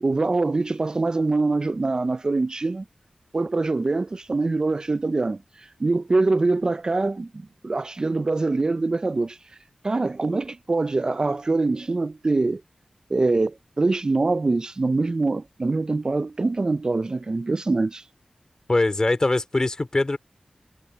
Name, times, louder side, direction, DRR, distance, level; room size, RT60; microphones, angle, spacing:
voice 1, 0.0-2.8 3.3-9.4 9.8-12.6 13.1-18.0, right 3 dB, 40° right, 0.4 m, -24 dB
voice 2, 18.7-20.2, left 2 dB, 35° left, 2.7 m, -22 dB
wide cardioid pair, 85°, 2 cm